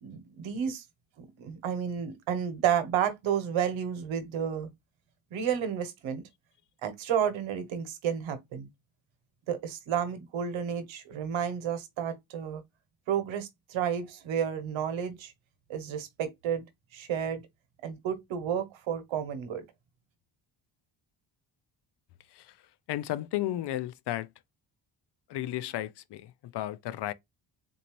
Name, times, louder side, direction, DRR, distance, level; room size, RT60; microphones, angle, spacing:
voice 1, 0.0-0.8 1.2-4.7 5.3-6.2 6.8-8.7 9.5-12.6 13.1-15.3 15.7-16.6 16.9-17.4 17.8-19.6, right 8 dB, 80° right, 1.1 m, -31 dB
voice 2, 22.9-24.3 25.3-27.1, left 14 dB, 60° left, 0.5 m, -33 dB
4.0 x 2.6 x 3.0 m
cardioid pair, 105°, 46 cm